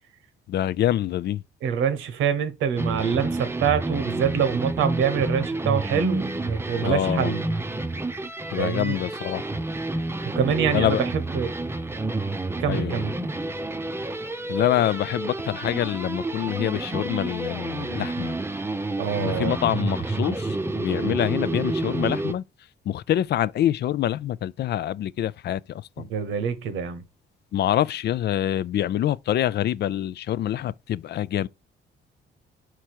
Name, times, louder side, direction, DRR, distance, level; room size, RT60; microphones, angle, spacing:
voice 1, 0.5-1.4 6.8-7.3 8.5-9.4 10.7-11.0 12.6-13.0 14.5-18.3 19.2-22.4 22.9-26.1 27.5-31.5, left 11 dB, 55° left, 0.4 m, -26 dB
voice 2, 1.6-7.4 8.6-9.0 10.2-11.5 12.6-13.1 19.0-19.6 26.0-27.0, right 7 dB, 90° right, 1.1 m, -25 dB
sound 1, 2.8-22.3, right 2 dB, 10° right, 0.6 m, -29 dB
4.9 x 4.5 x 4.4 m
cardioid pair, 90°, 20 cm